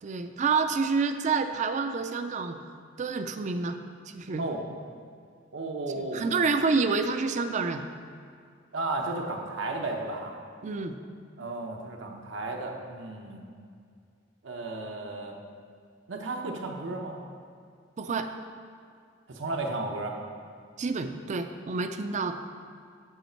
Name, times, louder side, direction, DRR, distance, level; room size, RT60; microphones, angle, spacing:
voice 1, 0.0-2.6 3.0-3.8 4.1-4.5 6.0-7.9 10.6-11.0 18.0-18.3 20.8-22.4, right 4 dB, 40° right, 8 dB, 0.4 m, -28 dB
voice 2, 5.5-6.2 8.7-10.4 11.4-13.4 14.4-15.4 16.1-17.2 19.3-20.2, right 2 dB, 80° right, 2 dB, 0.8 m, -34 dB
8.1 x 5.0 x 4.5 m, 2.2 s
head